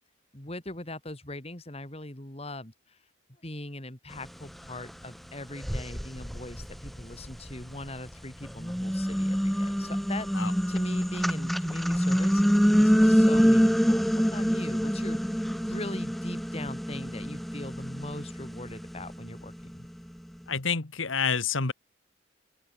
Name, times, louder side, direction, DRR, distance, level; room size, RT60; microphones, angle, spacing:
voice 1, 0.3-3.0 3.4-12.4 12.8-19.9, left 1 dB, 30° left, 3.0 m, -41 dB
sound 1, 4.9-5.0 5.6-7.9 8.4-19.7, equal, ahead, 1.1 m, -26 dB
voice 2, 20.5-21.7, left 5 dB, 80° left, 1.7 m, -28 dB
open air
head